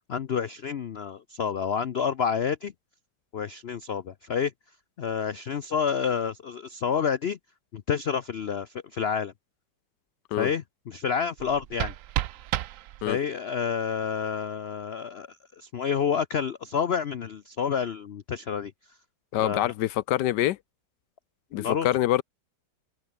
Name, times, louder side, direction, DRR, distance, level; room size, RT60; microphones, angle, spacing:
voice 1, 0.1-2.7 3.3-4.5 5.0-7.4 7.7-9.3 10.4-11.9 13.1-15.3 15.6-18.7 19.4-19.7 21.5-21.9, left 7 dB, 90° left, 0.5 m, -29 dB
sound 1, 11.4-13.4, right 13 dB, 85° right, 0.7 m, -32 dB
voice 2, 19.3-20.6 21.5-22.2, left 13 dB, 70° left, 1.2 m, -25 dB
omnidirectional pair, 2.0 m